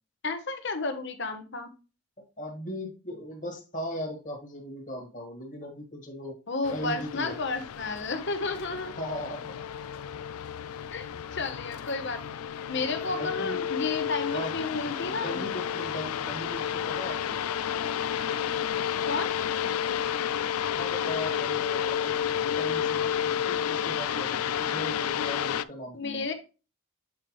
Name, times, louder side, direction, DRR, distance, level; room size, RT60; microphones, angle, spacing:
voice 1, 0.2-1.7 6.5-8.9 10.9-12.2 12.7-15.4 19.1-19.3 25.9-26.3, left 3 dB, 55° left, 8 dB, 1.0 m, -32 dB
voice 2, 2.4-6.4 6.7-7.4 9.0-9.6 12.7-12.9 13.1-13.7 14.3-14.5 14.8-17.4 20.7-26.3, equal, 35° left, 0 dB, 1.8 m, -38 dB
sound 1, 6.6-25.6, left 9 dB, 85° left, 0.4 m, -31 dB
7.8 x 4.9 x 3.1 m, 0.32 s
head